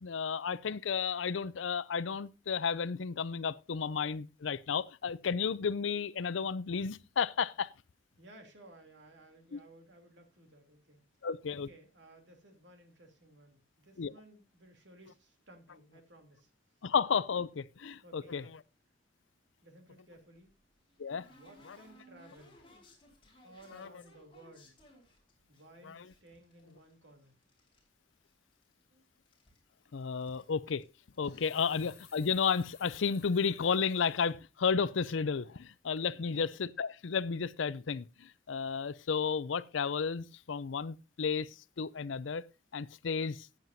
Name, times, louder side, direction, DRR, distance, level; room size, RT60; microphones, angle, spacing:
voice 1, 0.0-7.7 9.5-9.6 11.2-11.7 14.0-14.1 16.8-18.4 21.0-21.2 23.8-23.9 25.9-26.0 29.9-30.8 31.2-41.5 41.8-42.4 42.7-43.5, left 6 dB, 85° left, 0.5 m, -32 dB
voice 2, 8.2-11.1 11.5-16.5 16.8-16.9 18.0-18.6 19.6-20.5 21.3-22.6 23.4-24.8 25.5-27.4 28.7-29.0 36.1-36.4, right 1 dB, 65° right, 3.1 m, -58 dB
sound 1, 20.1-25.6 26.1-27.9 28.1-28.9 29.1-30.5 30.8-30.9 31.1-31.4 31.7-31.8 32.6-32.7 33.0-33.2 33.8-34.1, left 1 dB, 30° left, 4.9 m, -61 dB
sound 2, 29.8-30.0 31.0-34.3 34.8-34.9 35.4-35.7 36.0-36.1, left 8 dB, 55° left, 4.4 m, -59 dB
15.0 x 9.1 x 2.7 m
head